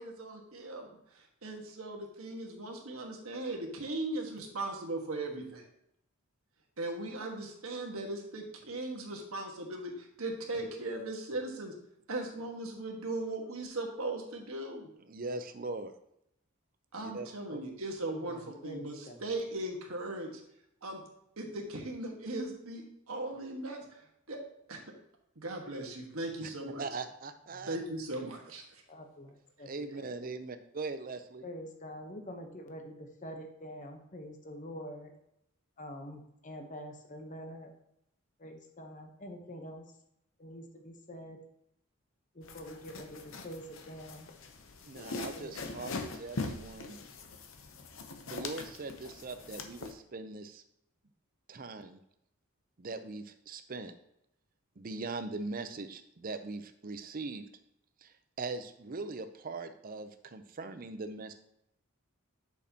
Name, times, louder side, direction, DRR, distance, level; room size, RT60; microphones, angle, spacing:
voice 1, 0.0-5.6 6.8-11.7 12.1-14.9 16.9-20.3 20.8-21.0 21.4-24.0 24.3-24.4 24.7-24.8 25.3-26.8 27.6-28.8, right 2 dB, 70° right, 1 dB, 1.5 m, -38 dB
voice 2, 15.1-15.9 16.9-17.6 26.4-26.5 26.8-27.8 29.7-31.4 44.8-47.0 48.2-50.6 51.5-52.0 52.8-54.0 54.8-57.5 58.0-61.3, right 3 dB, 40° right, 9 dB, 0.5 m, -41 dB
voice 3, 18.3-19.3 27.5-27.7 28.9-30.1 31.4-35.1 35.8-37.7 38.4-39.9 40.4-41.4 42.3-44.3 45.3-45.9, equal, 35° left, 4 dB, 0.9 m, -46 dB
sound 1, 42.4-49.9, left 3 dB, 60° left, 0.7 m, -42 dB
8.3 x 6.4 x 2.9 m, 0.77 s
head